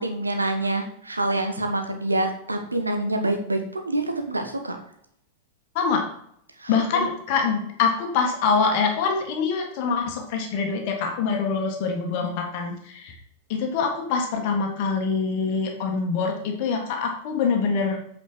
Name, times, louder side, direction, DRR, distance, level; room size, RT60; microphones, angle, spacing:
voice 1, 0.0-4.8 6.6-7.1, right 2 dB, 80° right, 5 dB, 1.1 m, -26 dB
voice 2, 6.7-13.1 13.5-18.0, left 5 dB, 45° left, 2 dB, 1.7 m, -24 dB
8.6 x 5.1 x 4.5 m, 0.68 s
figure-of-eight pair, 90°, 0 cm